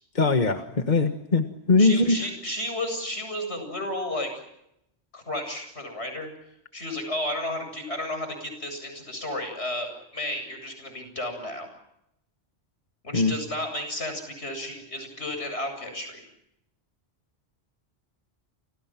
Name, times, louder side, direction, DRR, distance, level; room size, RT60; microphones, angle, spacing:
voice 1, 0.1-2.3 13.1-13.3, left 3 dB, 45° left, 6 dB, 1.7 m, -21 dB
voice 2, 1.8-4.4 5.1-6.3 6.7-11.7 13.0-16.3, left 1 dB, 85° left, 6 dB, 8.2 m, -33 dB
30.0 x 28.0 x 6.1 m, 0.78 s
omnidirectional pair, 1.1 m